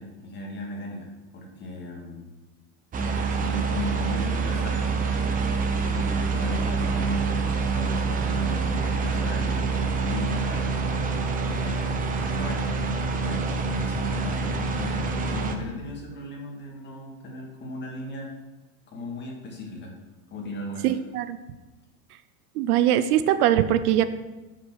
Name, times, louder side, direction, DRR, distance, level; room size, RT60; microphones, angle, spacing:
voice 1, 0.0-2.3 3.3-5.0 5.8-11.0 11.4-12.8 13.1-18.3 18.9-20.0 20.3-21.0, equal, 25° left, 0 dB, 2.2 m, -37 dB
sound 1, 2.9-15.6, right 4 dB, 20° right, 0.8 m, -26 dB
voice 2, 20.8-21.4 22.5-24.1, right 11 dB, 75° right, 12 dB, 0.8 m, -21 dB
9.6 x 6.5 x 6.4 m, 1.1 s
supercardioid pair, 155°, 45 cm